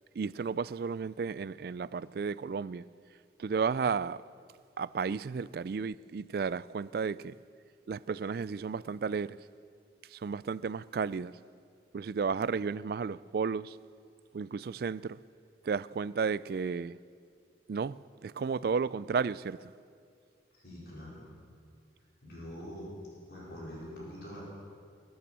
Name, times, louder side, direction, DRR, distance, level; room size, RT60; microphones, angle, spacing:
voice 1, 0.1-2.8 3.4-4.2 4.8-7.3 7.9-9.4 10.1-11.3 11.9-13.8 14.3-15.2 15.6-17.0 17.7-19.6, right 5 dB, 55° right, 0.3 m, -33 dB
voice 2, 20.5-21.2 22.2-22.9 23.3-24.4, equal, 65° left, 4.8 m, -44 dB
22.5 x 8.8 x 6.9 m
head